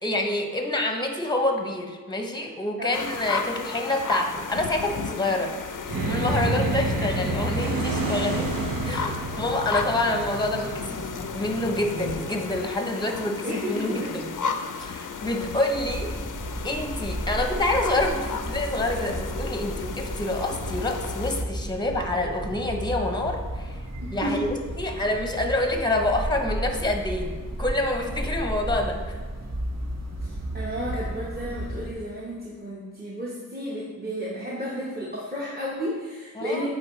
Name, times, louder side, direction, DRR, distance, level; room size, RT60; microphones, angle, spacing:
voice 1, 0.0-5.6 6.1-8.5 8.8-14.3 14.8-16.2 16.6-23.8 24.1-27.3 27.6-29.1 36.4-36.7, left 2 dB, 10° left, 4 dB, 0.7 m, -27 dB
voice 2, 2.8-3.1 6.4-6.6 13.4-14.1 24.0-24.4 30.2-36.7, equal, 25° right, -6 dB, 1.0 m, -32 dB
sound 1, 2.9-21.4, left 5 dB, 65° left, 0.5 m, -34 dB
sound 2, 5.9-12.4, right 2 dB, 80° right, 0.8 m, -29 dB
sound 3, 15.7-31.9, right 1 dB, 50° right, 0.9 m, -33 dB
7.9 x 4.2 x 3.1 m, 1.4 s
wide cardioid pair, 55°, 34 cm